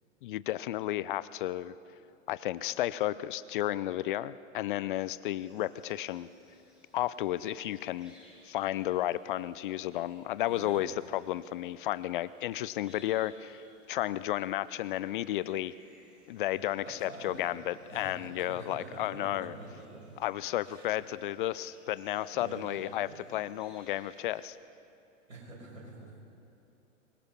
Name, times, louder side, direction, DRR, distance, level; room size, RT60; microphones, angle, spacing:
voice 1, 0.2-1.7 2.3-6.3 6.9-8.1 8.4-15.7 16.3-19.5 20.2-24.6, left 14 dB, 40° left, 17 dB, 0.5 m, -33 dB
sound 1, 4.9-24.6, equal, ahead, 6.8 m, -63 dB
voice 2, 10.5-10.8 16.9-17.5 17.9-20.2 20.6-20.9 22.3-23.3 25.3-26.3, right 2 dB, 80° right, -2 dB, 6.6 m, -46 dB
24.5 x 22.0 x 5.6 m, 2.8 s
figure-of-eight pair, 100°, 40 cm